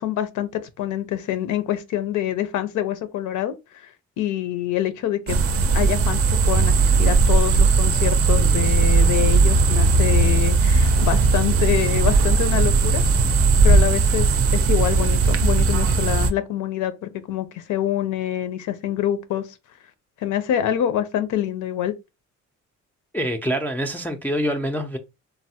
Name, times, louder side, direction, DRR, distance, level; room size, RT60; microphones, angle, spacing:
voice 1, 0.0-5.4 5.7-13.0 13.6-19.5 20.2-21.9, left 11 dB, 80° left, 0.5 m, -26 dB
sound 1, 5.3-16.3, right 4 dB, 50° right, 0.5 m, -19 dB
Fixed-wing aircraft airplane, 8.3-13.8, right 2 dB, 85° right, 0.7 m, -22 dB
voice 2, 23.1-25.0, equal, 5° left, 0.3 m, -25 dB
3.2 x 2.0 x 2.7 m
cardioid pair, 90°, 30 cm